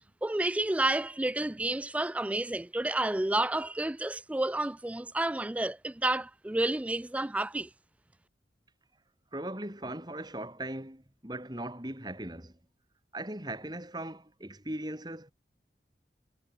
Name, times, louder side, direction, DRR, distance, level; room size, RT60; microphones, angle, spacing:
voice 1, 0.2-7.7, right 2 dB, 10° right, 0.3 m, -30 dB
voice 2, 9.3-12.5 13.1-15.3, right 1 dB, 25° right, 3.8 m, -39 dB
head